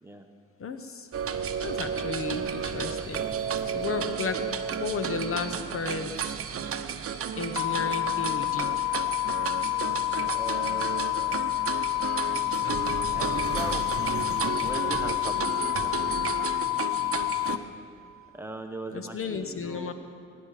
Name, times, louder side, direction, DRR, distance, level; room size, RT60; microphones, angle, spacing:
voice 1, 0.6-1.1 1.6-3.2 3.6-6.4 7.4-8.7 18.9-19.9, left 5 dB, 45° left, 8 dB, 1.0 m, -34 dB
sound 1, 1.1-17.6, right 7 dB, 50° right, 0.9 m, -33 dB
sound 2, 7.6-17.6, left 20 dB, 70° left, 0.5 m, -28 dB
voice 2, 10.2-11.5 13.1-16.2 17.0-17.2 18.3-19.9, right 1 dB, 10° right, 4 dB, 1.3 m, -40 dB
21.5 x 10.5 x 5.0 m, 2.5 s
cardioid pair, 90°, 30 cm